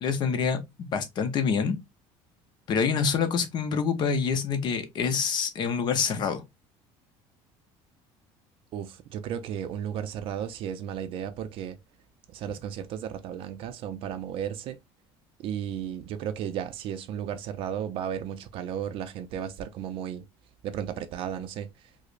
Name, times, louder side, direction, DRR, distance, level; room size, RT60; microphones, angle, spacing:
voice 1, 0.0-1.8 2.7-6.4, left 6 dB, 40° left, 0.7 m, -26 dB
voice 2, 8.7-11.8 12.3-14.8 15.4-20.2 20.6-21.9, right 9 dB, 55° right, 0.4 m, -34 dB
4.8 x 2.1 x 2.4 m
cardioid pair, 150°, 11 cm